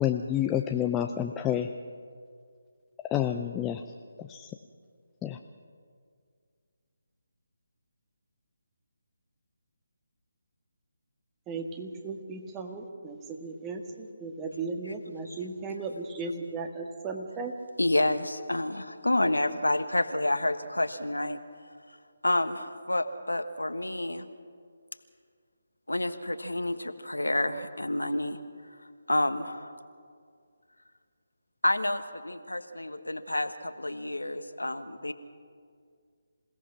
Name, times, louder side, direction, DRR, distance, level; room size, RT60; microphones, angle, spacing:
voice 1, 0.0-1.7 3.0-3.8 4.2-4.5 5.2-5.4, left 10 dB, 15° left, 5 dB, 0.6 m, -28 dB
voice 2, 11.5-17.6, right 3 dB, 15° right, 4 dB, 1.7 m, -36 dB
voice 3, 17.8-21.4 22.2-24.3 25.9-28.4 29.1-29.7 31.6-35.1, left 1 dB, 90° left, 9 dB, 1.4 m, -29 dB
27.5 x 17.0 x 5.9 m, 2.2 s
figure-of-eight pair, 150°, 0 cm